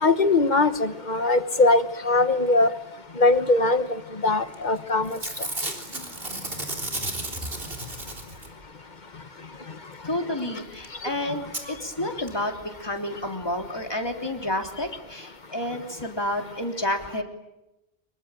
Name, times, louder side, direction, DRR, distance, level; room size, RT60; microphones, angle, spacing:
voice 1, 0.0-2.7 3.2-5.2, left 2 dB, 45° left, 11 dB, 1.3 m, -21 dB
Packing tape duct tape / Tearing, 4.5-4.8 5.0-8.6 10.6-10.7 10.8-10.9 11.5-11.6 12.3-12.4 12.6-12.7, right 2 dB, 65° right, 3.9 m, -33 dB
voice 2, 10.0-17.2, left 1 dB, 25° left, 3 dB, 3.4 m, -30 dB
25.5 x 23.0 x 9.0 m, 0.94 s
omnidirectional pair, 1.1 m